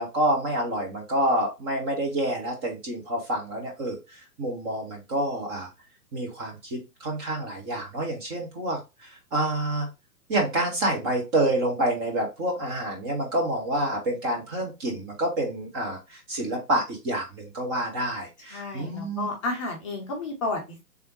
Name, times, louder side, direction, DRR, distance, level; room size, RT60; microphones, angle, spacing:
voice 1, 0.0-5.7 6.1-9.9 10.3-19.3, right 1 dB, 15° right, 0 dB, 0.7 m, -28 dB
voice 2, 18.5-20.8, left 2 dB, 20° left, 0 dB, 0.6 m, -31 dB
3.5 x 3.4 x 3.0 m, 0.25 s
figure-of-eight pair, 125°, 47 cm